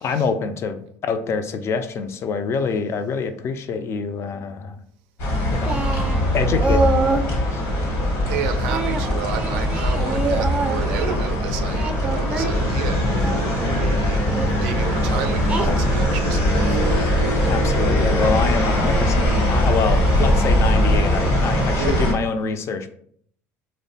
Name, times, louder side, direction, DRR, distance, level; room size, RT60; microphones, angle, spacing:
voice 1, 0.0-4.8 5.5-5.8 6.3-7.6 17.5-22.9, left 5 dB, 45° left, 0.3 m, -26 dB
sound 1, 5.2-22.1, left 1 dB, 80° left, 1.0 m, -21 dB
Singing, 5.6-7.3 8.7-11.2 11.7-13.5 14.3-14.5 15.5-16.1, right 3 dB, 15° right, 0.5 m, -26 dB
voice 2, 8.0-17.1 21.8-22.1, right 7 dB, 85° right, 0.3 m, -32 dB
2.9 x 2.1 x 2.7 m
supercardioid pair, 85°, 6 cm